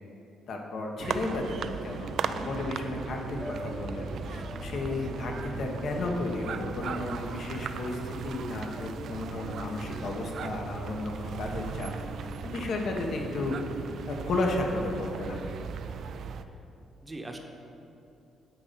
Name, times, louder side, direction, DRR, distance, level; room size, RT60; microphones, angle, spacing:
voice 1, 0.5-11.9 12.5-13.6 14.1-15.6, left 2 dB, 60° left, 1 dB, 1.2 m, -33 dB
sound 1, 1.0-16.4, right 6 dB, 65° right, 0.3 m, -38 dB
sound 2, 3.4-15.3, equal, 15° left, 0.9 m, -45 dB
voice 2, 17.0-17.4, right 2 dB, 15° right, 3 dB, 0.9 m, -43 dB
9.3 x 3.9 x 6.8 m, 2.8 s
cardioid pair, 90°, 0 cm